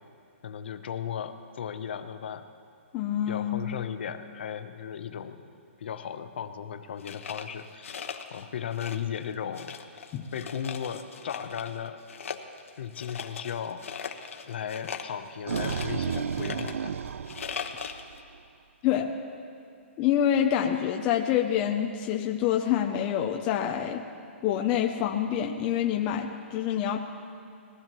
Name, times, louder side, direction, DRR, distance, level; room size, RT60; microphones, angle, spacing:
voice 1, 0.4-2.5 3.3-5.4 5.8-8.0 8.3-10.0 10.3-12.0 12.8-13.8 14.5-17.0, left 8 dB, 50° left, 9 dB, 0.8 m, -36 dB
voice 2, 2.9-3.7 10.1-10.3 18.8-19.1 20.0-24.0 24.4-27.0, left 10 dB, 15° left, 2 dB, 0.4 m, -26 dB
sound 1, 7.0-8.4 8.7-9.2 9.6-11.8 12.1-18.2, left 6 dB, 80° left, 1.0 m, -39 dB
sound 2, 15.1-18.4, right 7 dB, 90° right, 0.4 m, -33 dB
20.5 x 15.5 x 3.0 m, 2.5 s
hypercardioid pair, 175°, 7 cm